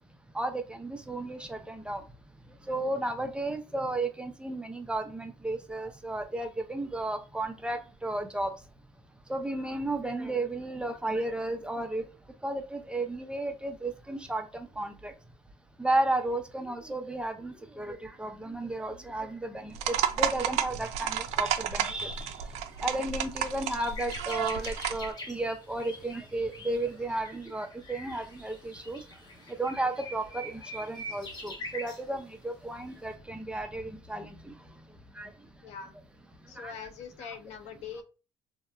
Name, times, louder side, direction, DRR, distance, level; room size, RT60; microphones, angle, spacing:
voice 1, 0.3-2.0 2.7-8.5 9.3-12.0 12.4-15.1 15.8-22.3 22.8-29.0 29.6-34.5 35.2-35.3 36.6-36.7, right 2 dB, 10° right, 5 dB, 0.5 m, -33 dB
sound 1, 19.7-25.1, right 9 dB, 70° right, 0.4 m, -32 dB
sound 2, 22.2-22.3 22.8-22.9 23.2-32.0 32.8-33.0, left 1 dB, 35° left, 1.0 m, -44 dB
voice 2, 35.6-35.9 36.5-38.0, left 6 dB, 70° left, 8 dB, 0.6 m, -42 dB
2.8 x 2.0 x 2.4 m, 0.34 s
supercardioid pair, 80°, 12 cm